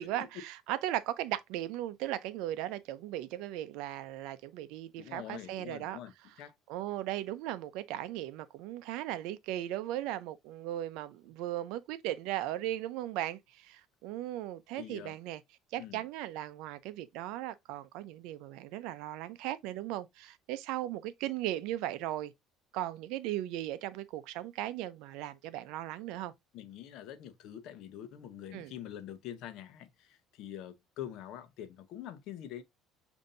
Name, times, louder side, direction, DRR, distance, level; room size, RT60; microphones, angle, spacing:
voice 1, 0.0-6.0 6.7-15.4 15.7-22.3 22.7-26.3 28.5-28.7, right 14 dB, 80° right, 0.5 m, -37 dB
voice 2, 5.0-6.1 6.4-6.5 14.8-15.1 15.8-16.0 26.5-32.6, left 11 dB, 65° left, 0.7 m, -45 dB
6.6 x 2.6 x 2.6 m
cardioid pair, 130°, 0 cm